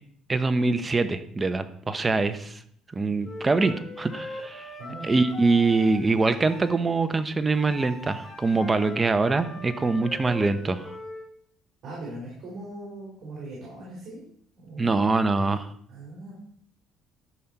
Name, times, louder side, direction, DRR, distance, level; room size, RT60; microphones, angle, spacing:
voice 1, 0.3-2.6 2.9-4.7 5.0-10.9 14.8-15.7, right 3 dB, 20° right, 10 dB, 0.8 m, -24 dB
Wind instrument woodwind instrument, 3.2-6.8 7.5-11.3, left 2 dB, 35° left, 3.2 m, -40 dB
voice 2, 11.8-14.2 14.6-15.0 15.9-16.3, right 2 dB, 55° right, -4 dB, 4.1 m, -40 dB
12.5 x 5.6 x 4.6 m, 0.63 s
cardioid pair, 125°, 0 cm